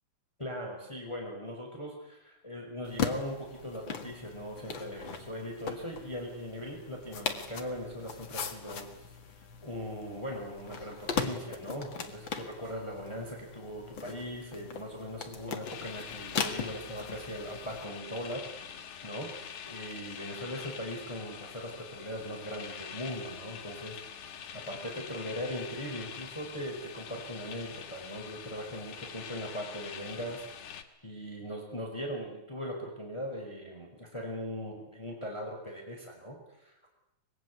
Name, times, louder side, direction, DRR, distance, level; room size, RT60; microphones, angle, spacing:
voice 1, 0.4-9.1 9.4-18.7 19.0-30.4 31.0-36.9, equal, 10° left, 1 dB, 4.9 m, -40 dB
sound 1, 2.8-17.8, left 6 dB, 45° left, 2.3 m, -39 dB
sound 2, 15.6-30.8, left 8 dB, 90° left, 3.3 m, -45 dB
24.0 x 21.5 x 9.7 m, 0.86 s
omnidirectional pair, 3.5 m